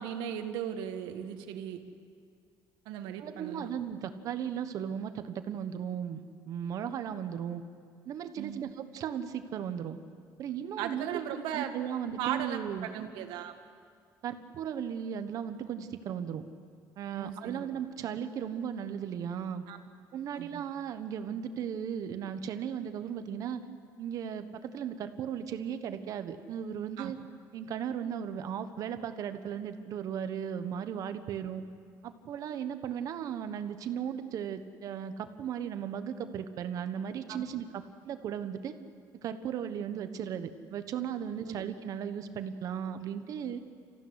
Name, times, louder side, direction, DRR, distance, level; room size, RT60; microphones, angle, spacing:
voice 1, 0.0-1.8 2.9-3.7 8.4-8.7 10.8-11.7 12.2-13.5 17.1-17.7 19.7-19.8 20.3-20.6 27.0-27.1 37.3-37.5 41.4-41.6, right 9 dB, 90° right, 6 dB, 1.8 m, -37 dB
voice 2, 3.2-6.2 6.5-7.6 8.0-10.0 10.4-11.2 11.5-12.9 14.2-16.4 17.0-19.6 20.1-23.6 24.0-27.2 27.5-31.6 32.0-38.7 39.2-43.6, right 8 dB, 50° right, 9 dB, 1.3 m, -36 dB
26.5 x 15.5 x 9.8 m, 2.2 s
cardioid pair, 150°, 7 cm